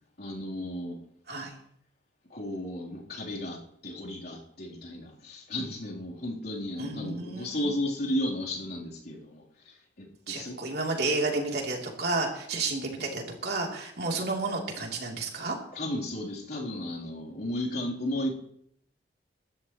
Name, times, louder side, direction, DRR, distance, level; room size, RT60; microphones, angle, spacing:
voice 1, 0.2-1.0 2.3-10.6 14.2-14.3 15.7-18.3, left 1 dB, 60° left, -4 dB, 3.8 m, -34 dB
voice 2, 6.8-7.7 10.3-15.6, right 3 dB, 65° right, 0 dB, 3.4 m, -31 dB
26.0 x 13.0 x 3.2 m, 0.71 s
head